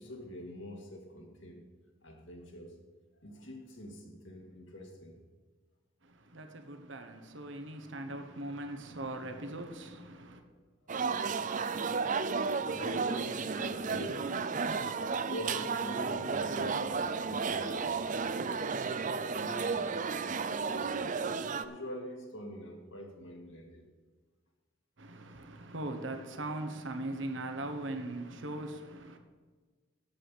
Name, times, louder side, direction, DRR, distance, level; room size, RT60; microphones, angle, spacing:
voice 1, 0.0-1.6 2.0-2.8 3.2-5.2 12.6-14.4 15.2-18.8 19.3-23.8, equal, 65° left, 2.1 m, -45 dB
voice 2, 6.0-10.4 25.0-29.2, right 1 dB, 70° right, 1.1 m, -40 dB
sound 1, 10.9-21.7, right 5 dB, 40° right, 0.5 m, -33 dB
7.8 x 7.8 x 8.5 m
head